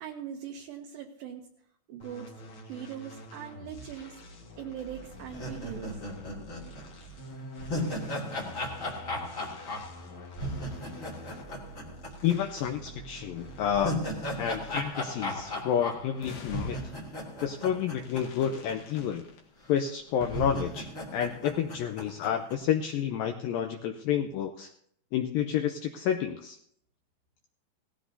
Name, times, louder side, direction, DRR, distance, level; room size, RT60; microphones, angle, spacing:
voice 1, 0.0-1.5 1.9-2.3 2.6-4.2 4.6-6.0, right 9 dB, 75° right, 2 dB, 2.3 m, -41 dB
sound 1, 2.0-15.0, equal, 50° left, 1.6 m, -46 dB
sound 2, 5.3-12.6 12.9-13.0 13.4-18.7 19.0-19.1 19.8-19.9 20.3-22.5, left 1 dB, 30° left, 1.5 m, -36 dB
sound 3, 11.7-13.8 14.1-14.2 15.0-15.8 16.2-21.1, left 5 dB, 70° left, 3.2 m, -51 dB
voice 2, 12.2-14.0 14.4-16.8 17.4-19.3 19.7-24.7 25.1-26.6, left 9 dB, 85° left, 5 dB, 2.0 m, -30 dB
18.0 x 14.5 x 2.7 m, 0.66 s
omnidirectional pair, 4.9 m